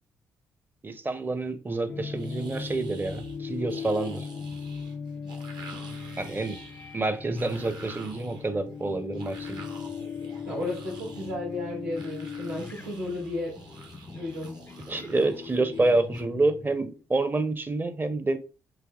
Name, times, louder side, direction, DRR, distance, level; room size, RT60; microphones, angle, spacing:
voice 1, 0.8-4.3 6.2-6.6 6.9-9.7 14.9-18.4, right 2 dB, 25° right, 0.8 m, -28 dB
sound 1, 1.9-17.0, left 6 dB, 25° left, 0.4 m, -39 dB
sound 2, 2.1-16.2, right 3 dB, 55° right, 1.2 m, -48 dB
voice 2, 10.5-13.6 14.1-14.6, left 2 dB, 85° right, 2.5 m, -33 dB
7.5 x 2.8 x 2.4 m
hypercardioid pair, 45°, 8 cm